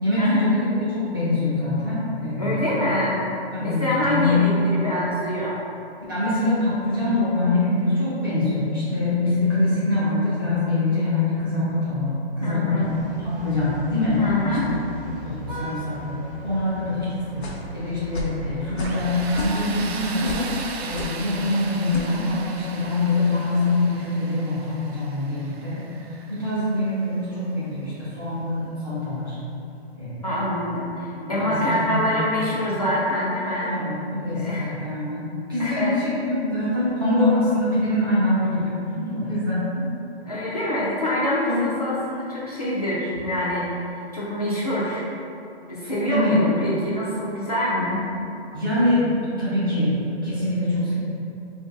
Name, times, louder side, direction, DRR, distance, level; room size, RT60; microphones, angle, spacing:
voice 1, 0.0-2.7 3.5-4.9 6.1-14.2 14.5-14.7 15.0-16.2 16.4-20.5 20.8-25.9 26.3-29.4 29.9-30.2 31.1-32.2 33.7-39.9 41.5-41.6 46.1-46.4 48.5-50.9, left 2 dB, 20° right, -12 dB, 0.6 m, -24 dB
voice 2, 2.4-3.2 3.6-5.5 12.4-12.8 14.2-14.7 30.2-33.7 34.4-34.8 35.6-36.0 40.3-43.8 44.1-45.1 45.7-48.0, left 1 dB, 35° left, -8 dB, 0.4 m, -25 dB
sound 1, 12.8-19.9, right 1 dB, 50° right, 1.0 m, -38 dB
sound 2, 17.4-17.7 18.1-18.4 18.8-19.0 19.3-19.8 20.3-20.5 21.0-21.2 21.9-22.1, left 2 dB, 70° left, 0.7 m, -31 dB
Tools, 18.8-27.6, right 4 dB, 70° right, 0.5 m, -38 dB
3.3 x 2.6 x 3.6 m, 2.6 s
hypercardioid pair, 180°, 32 cm